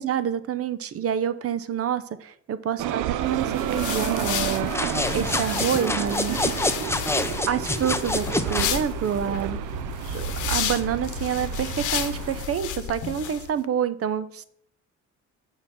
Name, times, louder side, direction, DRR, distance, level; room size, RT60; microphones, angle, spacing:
voice 1, 0.0-6.4 7.5-9.6 10.1-14.4, right 8 dB, 50° right, 14 dB, 0.7 m, -28 dB
sound 1, 2.8-12.5, right 12 dB, 90° right, 0.5 m, -31 dB
sound 2, 3.3-13.5, left 9 dB, 80° left, 0.9 m, -32 dB
sound 3, 4.6-8.8, left 2 dB, 10° left, 0.6 m, -27 dB
6.9 x 5.8 x 5.3 m, 0.67 s
cardioid pair, 90°, 30 cm